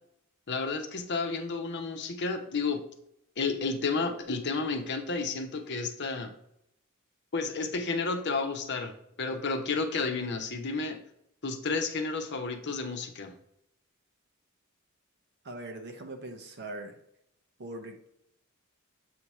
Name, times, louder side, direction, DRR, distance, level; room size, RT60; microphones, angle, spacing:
voice 1, 0.5-2.8 3.4-6.3 7.3-8.9 9.2-11.0 11.4-13.3, left 4 dB, 55° left, 5 dB, 0.9 m, -31 dB
voice 2, 15.4-16.9 17.6-18.1, right 2 dB, 55° right, 4 dB, 0.9 m, -41 dB
7.8 x 2.9 x 4.8 m, 0.76 s
head